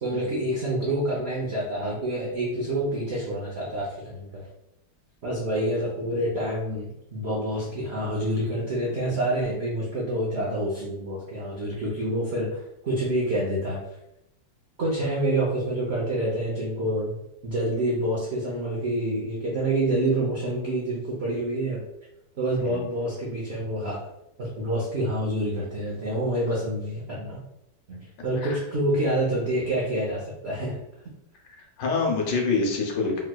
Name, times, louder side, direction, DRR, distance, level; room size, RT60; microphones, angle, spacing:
voice 1, 0.0-4.4 5.2-13.8 14.8-21.8 22.4-24.0 24.4-27.4 27.9-30.8, right 1 dB, 70° right, -4 dB, 0.6 m, -27 dB
voice 2, 31.8-33.2, left 4 dB, 80° left, 1 dB, 1.4 m, -26 dB
3.2 x 3.0 x 2.2 m, 0.83 s
omnidirectional pair, 2.0 m